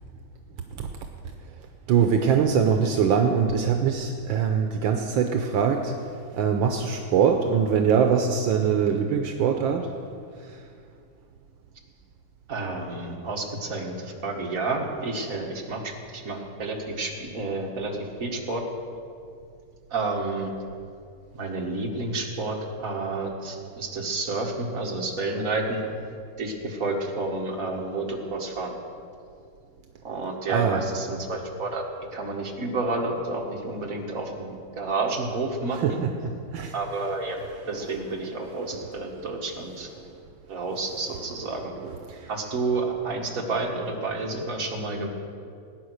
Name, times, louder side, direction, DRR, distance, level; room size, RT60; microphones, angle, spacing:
voice 1, 1.9-5.9 6.3-10.0 10.4-10.6 30.5-30.8 35.8-36.7 41.8-42.3, right 7 dB, 75° right, 5 dB, 1.5 m, -23 dB
voice 2, 12.5-18.6 19.9-20.5 21.3-25.8 26.4-28.7 30.0-31.8 32.1-36.0 36.7-37.4 37.7-39.9 40.5-41.7 42.3-45.1, right 3 dB, 45° right, 0 dB, 2.2 m, -30 dB
19.0 x 9.7 x 6.4 m, 2.4 s
omnidirectional pair, 2.2 m